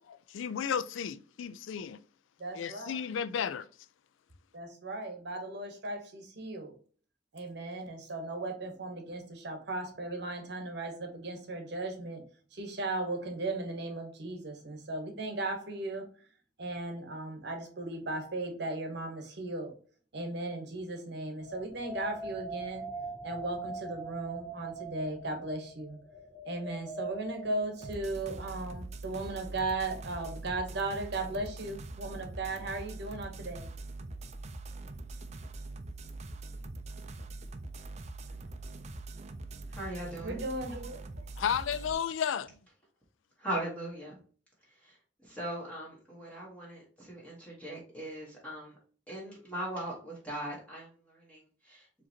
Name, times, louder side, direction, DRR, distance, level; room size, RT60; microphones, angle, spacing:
voice 1, 0.1-2.0 2.5-3.7 41.4-42.6, left 8 dB, 90° left, 0.3 m, -33 dB
voice 2, 2.4-3.0 4.5-6.8 7.3-16.1 16.6-19.8 20.1-22.9 23.2-26.0 26.4-33.7 40.2-41.0, right 2 dB, 60° right, 0.9 m, -37 dB
sound 1, 21.4-27.9, right 3 dB, 45° left, 1.3 m, -42 dB
sound 2, 27.8-41.9, right 2 dB, 35° right, 0.4 m, -43 dB
voice 3, 39.7-40.4 43.4-44.2 44.7-48.8 49.1-52.1, right 1 dB, 5° left, 1.2 m, -40 dB
4.8 x 3.0 x 2.7 m
head